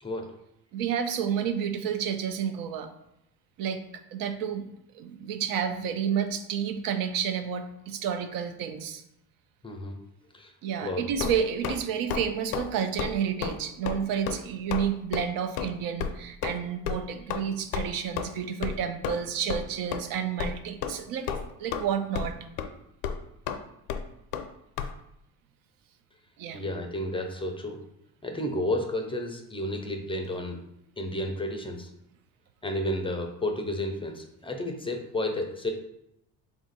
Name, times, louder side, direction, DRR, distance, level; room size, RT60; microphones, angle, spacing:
voice 1, 0.7-2.9 3.6-4.7 4.9-9.0 10.6-21.3 21.6-22.4 26.4-26.7, right 8 dB, 70° right, 8 dB, 0.5 m, -30 dB
voice 2, 9.6-10.0 10.3-10.5 10.8-11.0 26.5-27.8 28.2-30.6 31.0-31.9 32.6-35.7, left 1 dB, 15° left, 3 dB, 0.4 m, -31 dB
sound 1, 11.2-11.8 12.1-12.3 12.5-12.7 13.0-13.1 13.4-13.6 13.9-14.0 14.3-14.4 14.7-14.9 15.1-15.2 15.6-15.7 16.0-16.1 16.4-16.6 16.9-17.0 17.3-17.4 17.7-17.8 18.2-18.3 18.6-18.8 19.0-19.2 19.5-19.6 19.9-20.0 20.4-20.5 20.8-21.0 21.3-21.8 22.1-22.3 22.6-22.7 23.0-23.2 23.5-23.6 23.9-24.0 24.3-24.5 24.8-24.9, left 8 dB, 80° left, 0.5 m, -31 dB
3.5 x 2.5 x 4.0 m, 0.81 s
cardioid pair, 110°, 36 cm